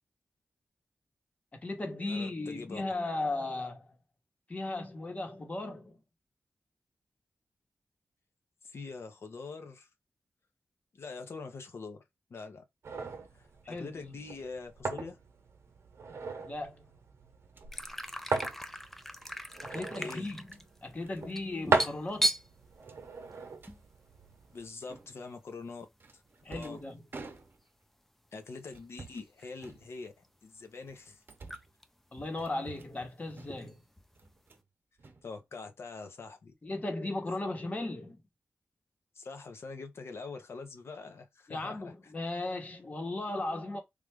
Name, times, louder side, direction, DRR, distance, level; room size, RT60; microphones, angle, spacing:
voice 1, 1.5-4.0 4.5-6.0 13.6-13.9 16.4-16.9 19.6-20.5 20.8-22.3 26.4-27.1 32.1-33.8 36.6-38.2 41.5-43.8, left 2 dB, 35° left, 1.1 m, -36 dB
voice 2, 2.0-2.8 8.6-9.9 10.9-12.0 12.3-12.6 13.3-15.2 19.7-20.3 24.5-25.9 26.1-26.2 26.5-26.8 28.3-31.2 35.2-36.5 37.3-37.4 39.1-42.1, left 4 dB, 70° left, 0.8 m, -44 dB
sound 1, 12.8-24.7, right 4 dB, 85° right, 0.8 m, -37 dB
sound 2, 17.4-17.7 19.2-19.4 20.3-20.7 21.1-21.3 21.5-21.8 22.0-22.1 22.8-23.8 24.9-25.3 26.0-27.9 28.7-29.3 29.6-30.3 30.8-31.8 32.4-33.0 33.3-33.8 34.1-34.7 35.0-35.8, right 3 dB, 50° right, 0.7 m, -51 dB
sound 3, 17.7-23.9 24.2-24.3 24.7-25.0 25.9-26.0 27.4-27.6 28.6-28.7 28.9-29.8 30.2-30.3 31.1-31.2 31.4-31.8 32.1-34.3, equal, 5° left, 0.4 m, -37 dB
3.3 x 2.4 x 3.4 m
wide cardioid pair, 90°, 4 cm